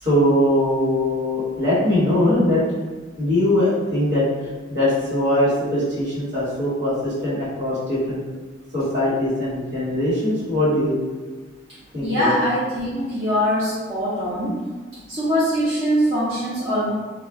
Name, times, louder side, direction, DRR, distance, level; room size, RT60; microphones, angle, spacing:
voice 1, 0.0-2.6 3.2-4.2 4.7-8.2 8.7-10.9 11.9-12.3, left 1 dB, 60° right, -9 dB, 1.3 m, -21 dB
voice 2, 12.0-14.6 15.1-16.9, equal, 30° right, -12 dB, 0.6 m, -22 dB
2.4 x 2.1 x 3.5 m, 1.3 s
head